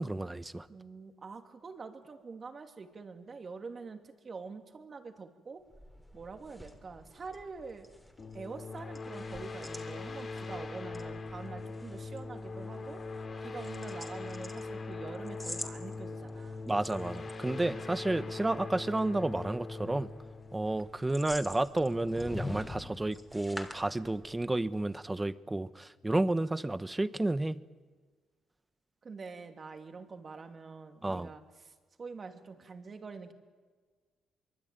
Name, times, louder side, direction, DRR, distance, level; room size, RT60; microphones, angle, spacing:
voice 1, 0.0-0.7 16.7-20.1 20.5-27.6 31.0-31.3, right 2 dB, 15° right, 14 dB, 1.1 m, -31 dB
voice 2, 0.7-5.6 6.1-7.9 8.3-13.0 13.4-16.7 29.0-33.3, right 4 dB, 40° right, 5 dB, 2.9 m, -45 dB
sound 1, 5.6-24.5, equal, ahead, 3.3 m, -50 dB
sound 2, 8.2-21.5, left 3 dB, 40° left, 3.0 m, -41 dB
sound 3, 21.9-23.2, left 3 dB, 20° left, 1.5 m, -40 dB
24.5 x 22.5 x 9.3 m, 1.5 s
cardioid pair, 90°, 0 cm